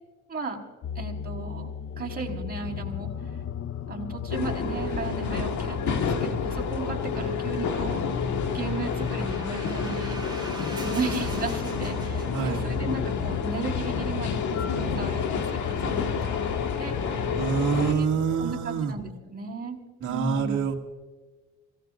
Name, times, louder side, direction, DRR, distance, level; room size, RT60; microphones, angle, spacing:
sound 1, 0.8-18.7, left 9 dB, 50° left, 0.7 m, -37 dB
voice 1, 0.9-1.7 2.0-3.1 3.9-8.0 8.5-10.2 10.8-16.3 16.8-17.2 17.7-18.1 18.4-19.8 20.1-20.6, right 4 dB, 30° right, 0 dB, 4.7 m, -35 dB
sound 2, 4.3-17.9, left 5 dB, 70° left, 1.8 m, -29 dB
sound 3, 7.8-12.9, right 2 dB, 15° right, 5.5 m, -43 dB
voice 2, 12.3-12.6 17.4-18.9 20.0-20.8, right 6 dB, 75° right, 0 dB, 2.3 m, -26 dB
27.0 x 18.0 x 2.6 m, 1.3 s
cardioid pair, 90°, 30 cm